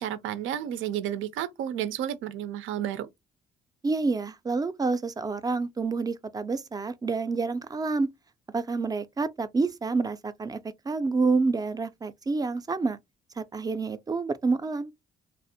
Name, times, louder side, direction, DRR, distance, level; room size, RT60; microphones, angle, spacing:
voice 1, 0.0-3.1, right 10 dB, 80° right, 0.4 m, -31 dB
voice 2, 3.8-8.1 8.5-10.6 10.9-13.0 13.4-14.9, right 4 dB, 20° right, 0.3 m, -28 dB
2.5 x 2.0 x 2.7 m
cardioid pair, 90°, 20 cm